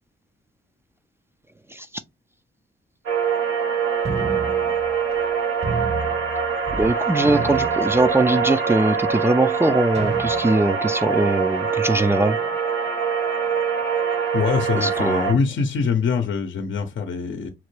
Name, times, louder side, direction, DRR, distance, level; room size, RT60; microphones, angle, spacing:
sound 1, 3.1-15.3, right 6 dB, 90° right, 1.2 m, -24 dB
sound 2, 4.0-5.3 5.6-6.9 7.2-8.5 9.1-9.2 9.9-10.8, right 3 dB, 30° right, 0.8 m, -31 dB
voice 1, 6.7-12.4 14.8-15.3, right 2 dB, 10° right, 0.4 m, -21 dB
voice 2, 14.3-17.5, left 5 dB, 70° left, 0.7 m, -23 dB
5.8 x 2.1 x 3.1 m
cardioid pair, 70°, 20 cm